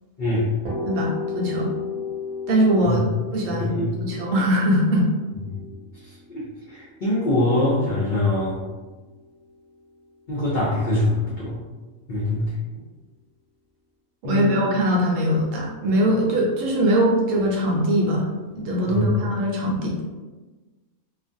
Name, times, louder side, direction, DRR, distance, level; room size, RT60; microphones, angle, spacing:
voice 1, 0.2-0.5 2.8-3.0 3.5-3.9 5.5-5.6 6.3-6.4 6.7-8.6 10.3-11.6 12.1-12.5 14.2-14.5 18.9-19.0, left 1 dB, 60° left, -8 dB, 0.5 m, -23 dB
sound 1, 0.6-8.4, left 5 dB, 30° right, 0.7 m, -34 dB
voice 2, 0.9-1.7 2.5-3.0 3.3-3.7 4.0-5.1 14.2-18.3 18.5-20.0, equal, 70° right, -2 dB, 0.9 m, -21 dB
2.4 x 2.3 x 2.6 m, 1.3 s
omnidirectional pair, 1.5 m